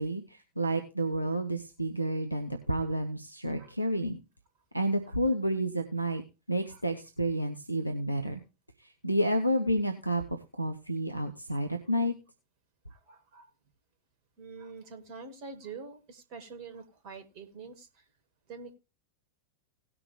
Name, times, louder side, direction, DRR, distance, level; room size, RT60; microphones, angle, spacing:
voice 1, 0.0-4.2 4.7-6.2 6.5-8.4 9.0-12.1, right 1 dB, 90° left, 6 dB, 0.8 m, -30 dB
voice 2, 12.9-13.5 14.4-17.9 18.5-18.7, right 4 dB, 45° right, 8 dB, 1.8 m, -45 dB
18.0 x 6.1 x 3.1 m, 0.28 s
figure-of-eight pair, 90°, 0 cm